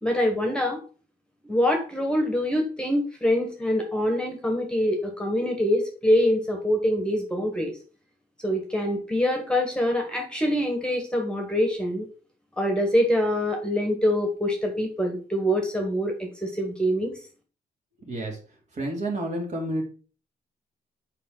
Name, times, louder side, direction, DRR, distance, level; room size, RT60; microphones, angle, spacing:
voice 1, 0.0-0.8 1.5-7.7 8.4-12.0 12.6-17.1, equal, 5° left, 3 dB, 1.5 m, -25 dB
voice 2, 18.1-18.4 18.7-19.8, right 1 dB, 45° right, 1 dB, 2.7 m, -29 dB
7.5 x 5.2 x 3.9 m, 0.38 s
cardioid pair, 125°, 16 cm